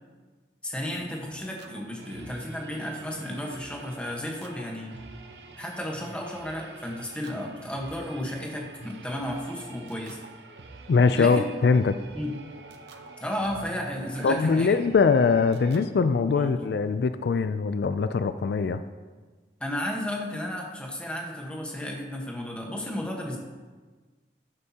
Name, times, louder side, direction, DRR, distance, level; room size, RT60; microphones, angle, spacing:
voice 1, 0.6-4.9 5.6-10.2 11.1-11.5 11.7-11.9 12.1-12.3 13.2-14.7 16.3-16.5 19.6-23.4, left 1 dB, 5° left, 0 dB, 1.1 m, -33 dB
sound 1, 0.9-15.9, right 3 dB, 80° right, 0.8 m, -46 dB
voice 2, 10.9-11.9 14.2-18.8, left 5 dB, 70° left, 11 dB, 0.3 m, -22 dB
13.0 x 8.0 x 2.8 m, 1.4 s
head